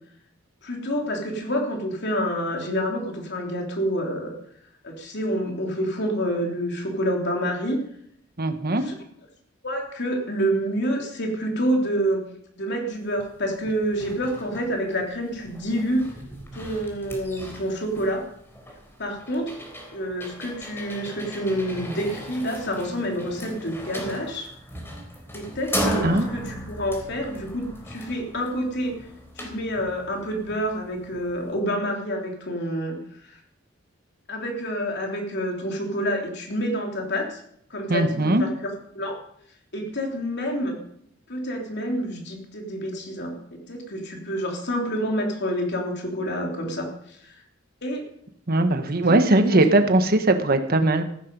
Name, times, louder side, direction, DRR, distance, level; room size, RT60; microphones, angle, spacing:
voice 1, 0.6-4.3 4.8-7.8 8.8-9.0 9.6-12.2 12.6-16.1 16.5-18.2 19.0-19.5 19.9-24.5 25.3-26.0 26.3-28.9 29.4-33.0 33.3-33.4 34.3-37.4 37.7-39.2 39.7-40.8 41.3-47.3 47.8-48.0 48.8-49.6, equal, 60° left, 1 dB, 3.3 m, -28 dB
voice 2, 8.4-8.8 26.0-26.2 37.9-38.5 48.5-51.0, right 2 dB, 50° right, 8 dB, 1.3 m, -20 dB
sound 1, 13.2-13.3 13.6-31.6, equal, 10° left, 3.7 m, -36 dB
15.0 x 12.0 x 5.4 m, 0.69 s
head